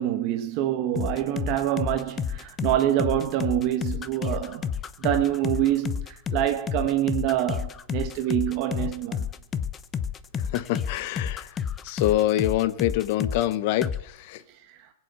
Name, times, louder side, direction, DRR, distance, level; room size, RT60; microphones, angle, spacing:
voice 1, 0.0-4.7 5.0-9.3, right 12 dB, 40° right, 1.3 m, -26 dB
sound 1, 1.0-13.5 13.8-14.0, left 7 dB, 20° left, 0.7 m, -30 dB
voice 2, 10.4-11.5 11.8-14.4, left 13 dB, 45° left, 0.9 m, -26 dB
19.0 x 7.9 x 8.1 m
hypercardioid pair, 145°, 0 cm